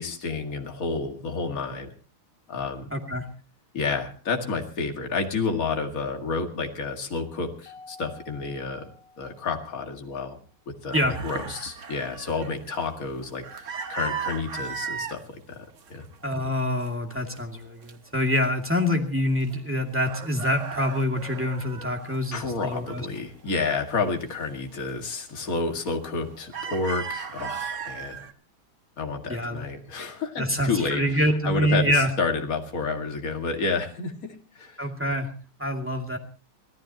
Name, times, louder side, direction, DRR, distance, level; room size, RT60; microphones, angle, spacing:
voice 1, 0.0-1.9 2.5-2.9 3.7-8.9 9.2-10.4 10.7-15.6 15.9-16.1 22.3-28.3 29.0-34.9, left 4 dB, 40° left, 3 dB, 2.4 m, -30 dB
voice 2, 2.9-3.3 10.9-11.1 16.2-23.1 29.3-29.7 30.4-32.1 34.8-35.3 35.6-36.2, left 1 dB, 5° right, 1 dB, 2.2 m, -26 dB
Mallet percussion, 7.7-10.1, left 4 dB, 85° left, 5.5 m, -50 dB
sound 1, 10.9-15.2 15.7-16.3 16.5-17.9 18.4-18.5 18.8-19.7 20.0-22.8 23.2-24.2 24.7-24.9 25.4-25.8 26.1-28.3, right 6 dB, 45° right, 1.1 m, -36 dB
25.5 x 17.0 x 2.9 m, 0.35 s
omnidirectional pair, 2.4 m